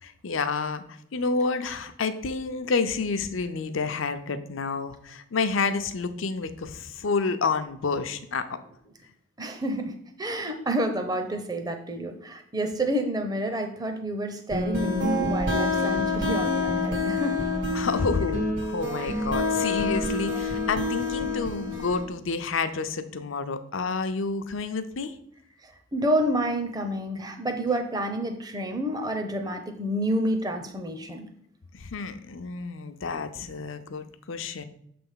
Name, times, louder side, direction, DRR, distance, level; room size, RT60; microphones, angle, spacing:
voice 1, 0.0-8.5 17.7-25.1 31.7-34.6, left 4 dB, 80° left, 9 dB, 0.6 m, -29 dB
voice 2, 9.4-17.4 25.9-31.3, right 1 dB, 20° right, 5 dB, 0.6 m, -29 dB
sound 1, 14.5-22.1, left 2 dB, 70° right, 1.7 m, -27 dB
6.8 x 3.4 x 5.6 m, 0.72 s
head